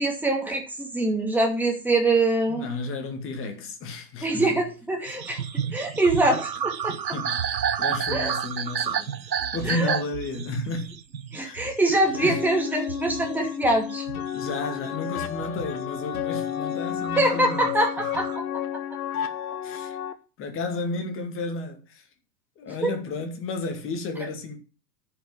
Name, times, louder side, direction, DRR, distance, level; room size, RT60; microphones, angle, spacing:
voice 1, 0.0-2.6 4.2-5.4 5.7-7.0 8.1-8.3 9.6-9.9 11.3-14.1 17.2-18.4 22.8-22.9, right 2 dB, 5° right, 2.6 m, -24 dB
voice 2, 2.5-4.5 5.1-5.2 7.1-9.1 9.5-10.9 11.4-11.7 12.1-12.4 14.3-18.1 19.6-20.0 20.4-22.1 22.6-24.6, left 3 dB, 25° left, 2.3 m, -32 dB
sound 1, 5.1-15.0 15.4-16.4 16.9-18.4, right 8 dB, 85° right, 0.7 m, -31 dB
sound 2, 12.1-20.1, left 10 dB, 55° left, 1.1 m, -32 dB
10.0 x 5.8 x 7.2 m
figure-of-eight pair, 100°, 50 cm